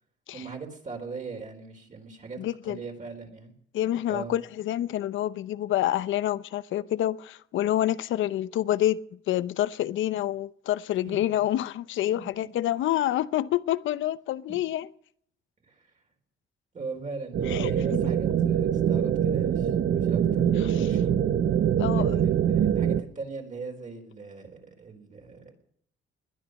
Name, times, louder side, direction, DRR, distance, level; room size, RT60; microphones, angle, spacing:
voice 1, 0.3-2.4 2.7-3.5 4.1-4.3 11.1-11.2 12.1-12.5 14.5-14.6 15.6-15.9 16.7-21.2 21.9-25.5, right 4 dB, 40° right, 4.0 m, -40 dB
voice 2, 2.4-2.8 3.7-9.0 9.3-14.9 17.5-17.7 20.6-20.9 21.8-22.2, left 13 dB, 80° left, 0.7 m, -27 dB
sound 1, 17.3-23.0, right 9 dB, 60° right, 0.9 m, -24 dB
21.0 x 10.5 x 6.4 m
cardioid pair, 90°, 20 cm